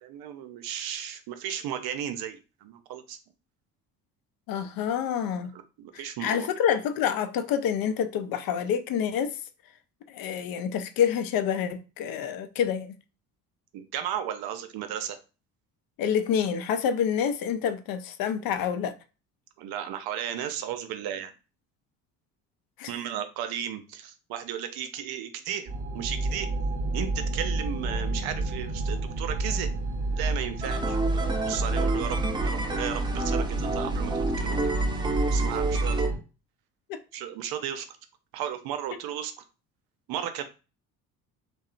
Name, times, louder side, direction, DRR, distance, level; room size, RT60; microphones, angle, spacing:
voice 1, 0.0-3.2 5.5-6.5 13.7-15.2 19.6-21.3 22.9-26.5 26.9-29.7 30.1-34.7 35.3-36.0 37.1-37.9 38.3-39.4 40.1-40.4, right 9 dB, 65° right, 0.6 m, -35 dB
voice 2, 4.5-5.5 6.2-9.4 10.1-13.0 16.0-18.9 22.8-22.9 36.9-37.0, left 8 dB, 55° left, 0.6 m, -27 dB
sound 1, 25.7-36.2, right 2 dB, 45° right, 0.9 m, -29 dB
sound 2, 30.6-36.1, right 2 dB, 10° right, 0.4 m, -31 dB
2.7 x 2.2 x 2.4 m
hypercardioid pair, 60°, 41 cm